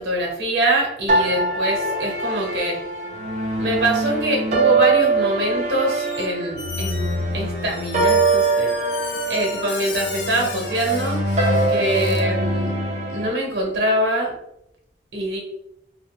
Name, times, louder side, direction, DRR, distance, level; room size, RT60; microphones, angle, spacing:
voice 1, 0.0-2.8 3.6-8.7 9.3-11.2 11.7-12.7 13.1-14.4 15.1-15.4, right 1 dB, 90° right, 0 dB, 0.8 m, -24 dB
sound 1, 1.1-13.3, right 3 dB, 40° right, 0.5 m, -23 dB
Squeak, 5.9-6.3 6.6-12.2, left 4 dB, 85° left, 0.5 m, -35 dB
2.3 x 2.1 x 3.0 m, 0.81 s
head